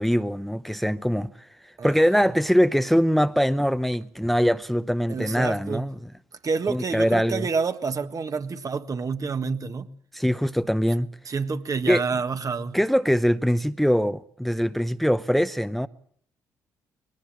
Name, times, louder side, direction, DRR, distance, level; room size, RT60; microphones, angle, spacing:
voice 1, 0.0-5.9 6.7-7.5 10.1-11.1 11.9-12.0 12.7-15.9, equal, ahead, 0.8 m, -23 dB
voice 2, 5.1-5.9 6.4-9.9 11.2-12.8, right 5 dB, 40° right, 1.6 m, -28 dB
21.5 x 19.0 x 7.5 m
hypercardioid pair, 45°, 9 cm